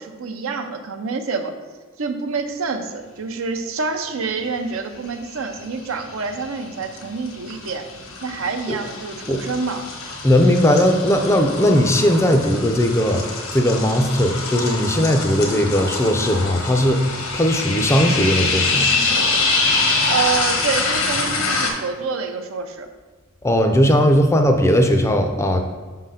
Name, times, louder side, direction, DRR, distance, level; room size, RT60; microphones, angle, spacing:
voice 1, 0.0-1.5 2.0-7.9 8.2-9.8 20.1-22.9, right 4 dB, 75° right, 6 dB, 0.6 m, -27 dB
sound 1, 5.4-5.9 6.2-21.7, left 3 dB, 90° left, 1.1 m, -25 dB
voice 2, 10.2-13.2 13.5-18.9 23.4-25.6, equal, 15° left, 5 dB, 0.4 m, -18 dB
5.8 x 3.8 x 5.6 m, 1.3 s
head